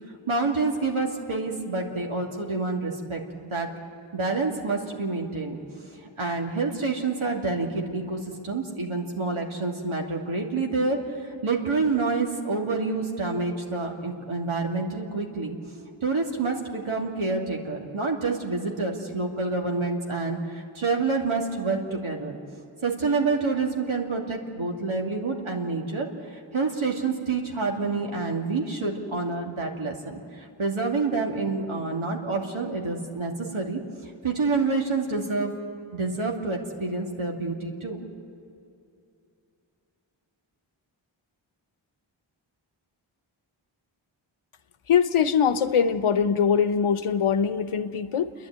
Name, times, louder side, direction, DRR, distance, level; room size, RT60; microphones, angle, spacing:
voice 1, 0.3-3.2 3.5-3.7 4.1-5.6 6.2-15.6 16.0-20.4 20.7-22.4 22.8-35.5 35.9-38.1, right 3 dB, 80° right, 0 dB, 2.6 m, -28 dB
voice 2, 44.9-48.3, left 7 dB, 85° left, 11 dB, 0.9 m, -22 dB
29.5 x 11.0 x 9.0 m, 2.6 s
cardioid pair, 50°, 49 cm